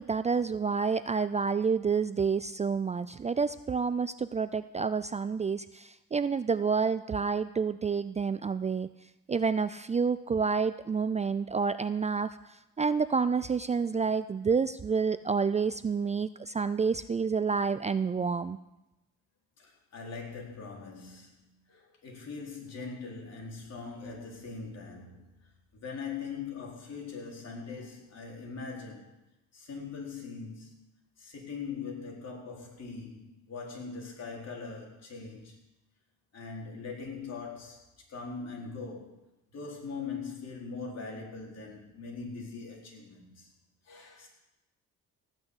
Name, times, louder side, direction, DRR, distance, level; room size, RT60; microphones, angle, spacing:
voice 1, 0.0-8.9 9.3-18.6, right 5 dB, 25° right, 13 dB, 0.4 m, -29 dB
voice 2, 19.6-25.3 25.7-29.1 29.5-30.9 31.2-35.6 36.3-37.8 38.1-39.2 39.5-43.5 43.9-44.3, left 4 dB, 55° left, -1 dB, 4.2 m, -41 dB
17.5 x 6.2 x 8.1 m, 0.92 s
cardioid pair, 90°, 30 cm